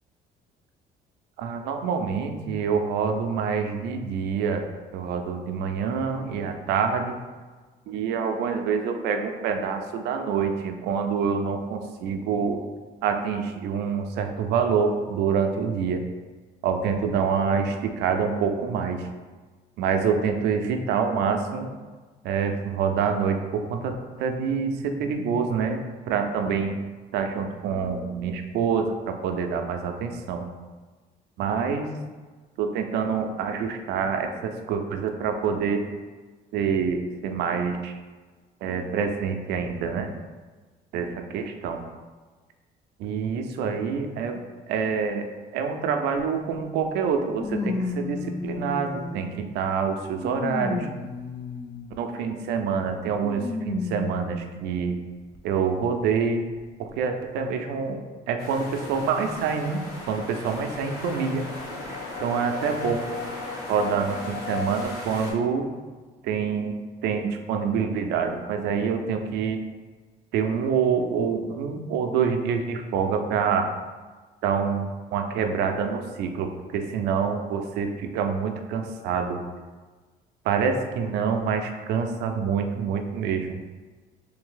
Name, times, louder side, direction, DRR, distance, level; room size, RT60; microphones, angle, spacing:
voice 1, 1.4-4.7 4.9-7.2 7.9-12.6 13.0-16.0 16.6-19.0 19.8-21.7 22.2-26.7 27.1-30.5 31.4-31.9 32.6-34.3 34.7-35.8 36.5-37.9 38.6-40.1 40.9-41.8 43.0-44.4 44.7-45.3 45.5-49.3 49.5-50.9 52.0-55.0 55.4-56.4 56.8-59.8 60.1-61.5 62.2-63.0 63.7-65.7 66.2-66.7 67.0-69.6 70.3-73.7 74.4-79.4 80.4-83.6, right 6 dB, 80° right, 5 dB, 0.5 m, -26 dB
sound 1, 46.2-46.3 47.4-49.4 50.0-52.0 53.2-54.6 55.3-55.4 56.6-56.7, left 3 dB, 20° left, 0.3 m, -32 dB
sound 2, 58.4-65.3, left 1 dB, 65° left, 1.2 m, -38 dB
sound 3, 59.3-64.9, left 4 dB, 85° left, 0.6 m, -38 dB
3.3 x 2.6 x 3.8 m, 1.3 s
cardioid pair, 110°, 17 cm